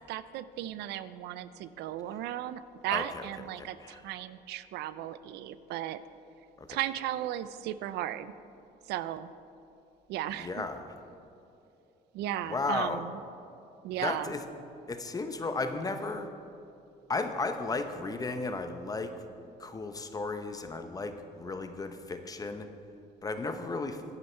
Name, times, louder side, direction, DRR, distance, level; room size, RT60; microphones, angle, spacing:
voice 1, 0.1-6.0 6.7-8.3 8.9-9.3 10.1-10.6 12.1-13.2 13.8-14.3, right 12 dB, 80° right, 15 dB, 0.4 m, -36 dB
voice 2, 2.9-3.3 3.8-4.0 6.6-6.7 10.4-10.8 12.5-13.0 14.0-14.5 14.9-16.3 17.1-19.1 19.6-22.7 23.2-24.0, left 3 dB, 20° left, 8 dB, 0.8 m, -34 dB
10.0 x 9.6 x 4.4 m, 2.6 s
cardioid pair, 110°, 17 cm